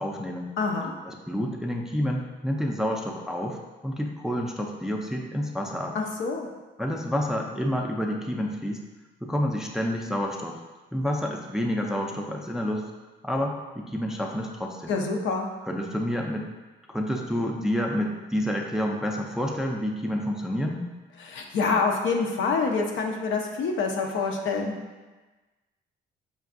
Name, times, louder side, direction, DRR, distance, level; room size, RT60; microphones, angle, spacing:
voice 1, 0.0-0.5 1.1-6.0 6.8-8.8 9.2-10.6 10.9-12.8 13.2-15.0 15.7-16.5 16.9-20.9, equal, 5° right, 0 dB, 0.4 m, -29 dB
voice 2, 0.6-0.9 5.9-6.5 14.9-15.5 21.2-24.8, left 4 dB, 75° left, 1 dB, 0.6 m, -26 dB
5.2 x 2.5 x 2.4 m, 1.2 s
cardioid pair, 90°, 20 cm